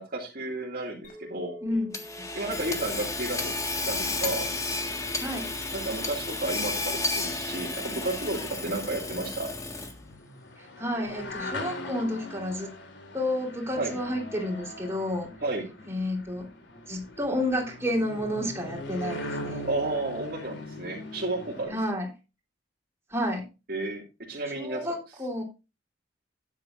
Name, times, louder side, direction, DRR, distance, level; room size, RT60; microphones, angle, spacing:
voice 1, 0.0-1.5 2.3-4.5 5.7-9.5 13.8-14.0 15.4-15.7 19.6-21.8 23.7-24.0 24.3-24.9, right 2 dB, 55° right, -2 dB, 2.2 m, -32 dB
Chink clink, 1.0-5.5, equal, 50° left, 4.3 m, -48 dB
voice 2, 1.6-1.9 5.2-5.5 10.8-12.7 13.1-15.3 15.9-16.5 16.9-19.7 21.7-22.1 23.1-23.4 24.6-25.4, left 1 dB, 15° right, 0 dB, 3.5 m, -30 dB
Hammer / Sawing, 1.9-10.1, left 2 dB, 20° left, 1.6 m, -32 dB
sound 1, 3.8-21.7, left 1 dB, 85° left, 2.9 m, -42 dB
12.5 x 9.7 x 2.5 m, 0.28 s
head